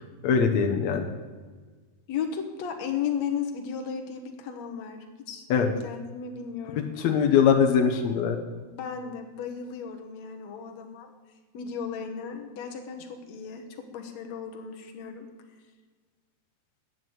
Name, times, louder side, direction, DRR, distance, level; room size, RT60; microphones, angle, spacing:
voice 1, 0.2-1.1 5.5-5.7 7.0-8.4, left 7 dB, 90° left, 4 dB, 1.5 m, -22 dB
voice 2, 2.1-7.1 8.6-11.1 11.5-15.3, left 7 dB, 65° left, 4 dB, 1.7 m, -35 dB
11.0 x 9.6 x 7.9 m, 1.4 s
omnidirectional pair, 4.7 m